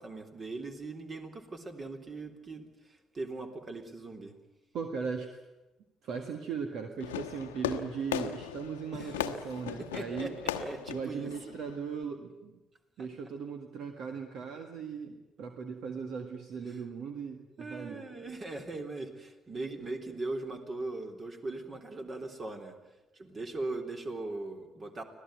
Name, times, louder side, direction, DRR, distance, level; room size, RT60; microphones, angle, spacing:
voice 1, 0.0-4.3 8.9-9.3 9.8-11.3 16.7-16.8 17.6-22.7 23.1-25.0, right 2 dB, 35° right, 4 dB, 3.6 m, -40 dB
voice 2, 4.7-5.4 6.0-10.4 10.9-12.6 13.0-18.1, right 6 dB, 60° right, 6 dB, 1.8 m, -38 dB
Fireworks, 7.0-12.0, left 10 dB, 80° left, 1.0 m, -37 dB
25.5 x 17.0 x 9.3 m, 1.0 s
hypercardioid pair, 50°, 0 cm